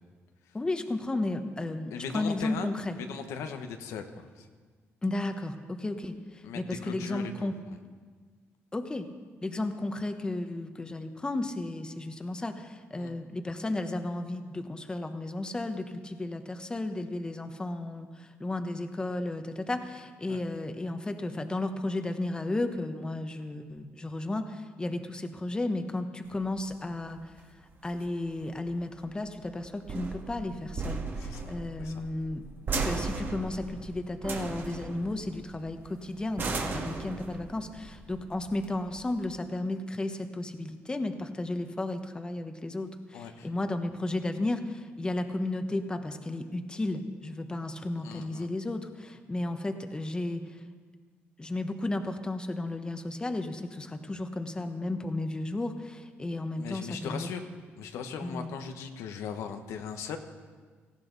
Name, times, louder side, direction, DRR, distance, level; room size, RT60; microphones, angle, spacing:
voice 1, 0.5-3.0 5.0-7.6 8.7-9.1 9.4-27.2 27.8-32.4 32.8-50.5 51.4-57.3 58.2-58.5, left 2 dB, 15° left, 7 dB, 1.1 m, -33 dB
voice 2, 1.9-2.7 3.0-4.5 6.4-7.5 13.0-13.1 20.2-20.4 31.2-31.5 31.8-32.0 43.1-43.5 48.0-48.5 56.6-57.4 57.8-60.2, left 6 dB, 90° left, 6 dB, 1.2 m, -38 dB
sound 1, 26.3-39.3, right 3 dB, 45° right, 1.9 m, -37 dB
17.5 x 15.0 x 4.0 m, 1.5 s
cardioid pair, 105°, 5 cm